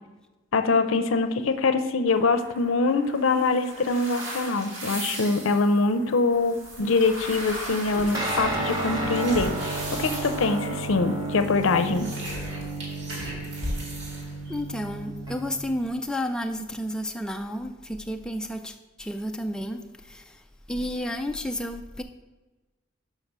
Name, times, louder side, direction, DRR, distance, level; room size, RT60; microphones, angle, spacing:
voice 1, 0.5-9.6 9.9-12.1, left 3 dB, 75° left, 10 dB, 0.6 m, -24 dB
sound 1, 2.1-11.7, right 1 dB, 80° right, 2.2 m, -40 dB
sound 2, 6.6-15.4, equal, 60° right, 2.2 m, -38 dB
Guitar, 8.1-15.8, right 2 dB, 20° right, 1.0 m, -32 dB
voice 2, 14.5-20.4 20.7-22.0, equal, 5° left, 4 dB, 0.3 m, -31 dB
5.9 x 5.8 x 5.4 m, 1.2 s
head